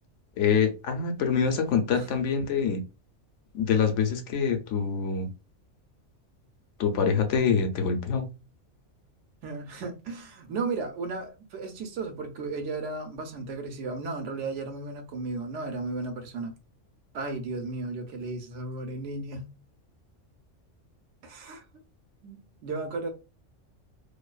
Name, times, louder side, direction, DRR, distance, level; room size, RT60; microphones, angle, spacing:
voice 1, 0.4-2.8 3.5-5.3 6.8-8.3, left 6 dB, 75° left, 0.9 m, -25 dB
voice 2, 9.4-16.5 17.1-19.5 21.2-21.6 22.2-23.1, right 3 dB, 75° right, 0.9 m, -34 dB
2.6 x 2.2 x 2.3 m
omnidirectional pair, 1.3 m